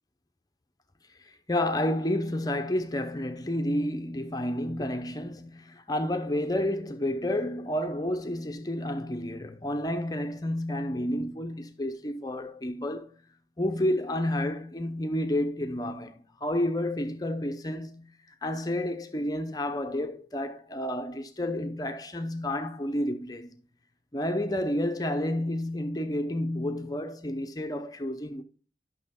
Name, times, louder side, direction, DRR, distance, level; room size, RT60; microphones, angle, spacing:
voice 1, 1.2-13.2 13.6-18.1 18.4-23.5 24.1-28.4, left 1 dB, 20° left, 0.7 m, -30 dB
12.0 x 6.2 x 3.6 m
head